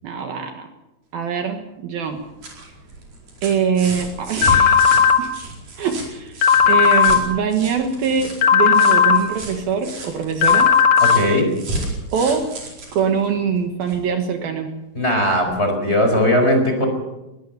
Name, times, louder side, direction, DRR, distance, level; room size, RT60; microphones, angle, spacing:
voice 1, 0.0-0.7 1.1-2.2 3.4-5.3 5.8-6.4 6.7-10.7 12.1-12.5 12.9-14.7, right 6 dB, 65° right, 6 dB, 3.0 m, -23 dB
sound 1, 2.0-14.1 15.4-15.5, right 1 dB, 45° right, 6.0 m, -33 dB
sound 2, 4.4-5.2 6.4-7.2 8.4-9.2 10.4-11.2, left 7 dB, 50° left, 2.1 m, -14 dB
voice 2, 11.0-11.5 14.9-16.9, left 1 dB, 15° left, 4 dB, 4.3 m, -18 dB
21.5 x 19.0 x 6.8 m, 0.98 s
omnidirectional pair, 4.9 m